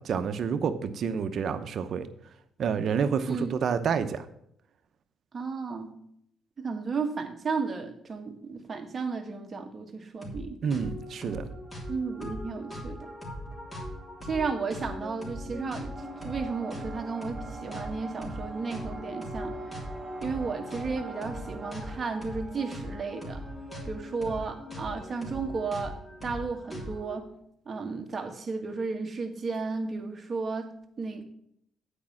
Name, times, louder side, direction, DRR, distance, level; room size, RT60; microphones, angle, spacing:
voice 1, 0.0-2.1 2.6-4.2 10.6-11.4, right 6 dB, 60° right, 0.8 m, -28 dB
voice 2, 5.3-6.0 6.6-10.6 11.9-13.1 14.2-19.6 20.2-23.5 23.9-27.3 27.7-31.2, right 4 dB, 35° right, 1.6 m, -33 dB
sound 1, 10.2-10.4 10.7-27.2, equal, 20° left, 3.0 m, -40 dB
sound 2, 16.0-23.9, right 3 dB, 5° right, 1.5 m, -44 dB
8.5 x 5.3 x 7.2 m
cardioid pair, 90°, 0 cm